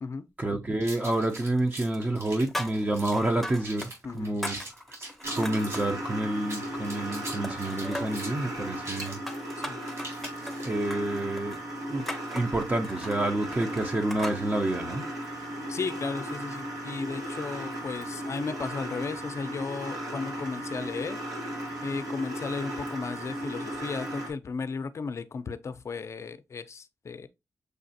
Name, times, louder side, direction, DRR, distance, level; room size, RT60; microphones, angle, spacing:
voice 1, 0.4-4.5 5.4-9.2 10.6-11.6 11.9-12.0 12.3-15.0, right 1 dB, 25° right, 0.6 m, -28 dB
sound 1, 0.8-3.3 3.6-4.0 4.2-5.9 6.4-10.9, right 1 dB, 60° right, 3.0 m, -41 dB
sound 2, 1.1-1.7 1.9-3.9 4.2-6.0 6.4-7.2 7.4-8.3 8.9-14.4, left 1 dB, ahead, 0.7 m, -39 dB
voice 2, 4.0-4.4 9.7-9.8 15.7-21.2 21.8-27.3, left 4 dB, 50° left, 0.5 m, -35 dB
sound 3, 5.2-24.3, equal, 80° right, 1.2 m, -36 dB
6.5 x 2.4 x 2.7 m
cardioid pair, 60°, 6 cm